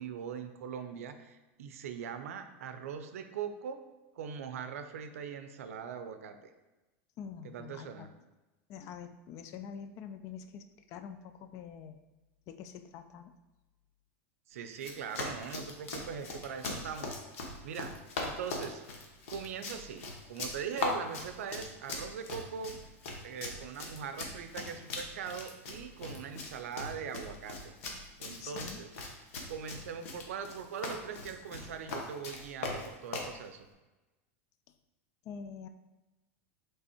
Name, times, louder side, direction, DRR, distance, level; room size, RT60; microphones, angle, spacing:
voice 1, 0.0-3.8 4.2-6.4 7.4-8.1 14.5-17.2 17.6-17.9 18.2-18.8 19.3-22.7 23.2-27.7 28.2-29.0 29.5-33.7, right 7 dB, 85° right, 8 dB, 0.5 m, -41 dB
voice 2, 7.2-8.1 8.7-12.0 12.5-13.3 16.7-16.9 28.4-28.8 35.2-35.7, left 7 dB, 45° left, 9 dB, 0.4 m, -46 dB
Run, 14.7-33.3, left 3 dB, 75° left, 0.9 m, -40 dB
3.4 x 3.3 x 4.3 m, 1.1 s
supercardioid pair, 125°, 8 cm